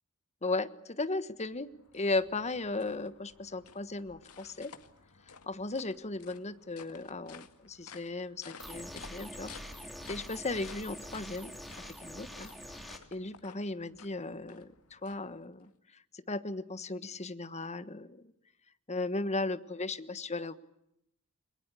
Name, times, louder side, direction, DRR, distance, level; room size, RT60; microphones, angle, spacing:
voice 1, 0.4-4.7 5.5-9.5 9.8-11.5 12.0-12.5 12.8-15.7 16.1-18.3 18.9-20.5, left 2 dB, 30° left, 12 dB, 1.3 m, -36 dB
sound 1, 1.2-15.7, left 6 dB, 75° left, 2.1 m, -54 dB
sound 2, 8.6-13.0, equal, ahead, 3.3 m, -45 dB
29.5 x 22.5 x 8.3 m, 0.81 s
head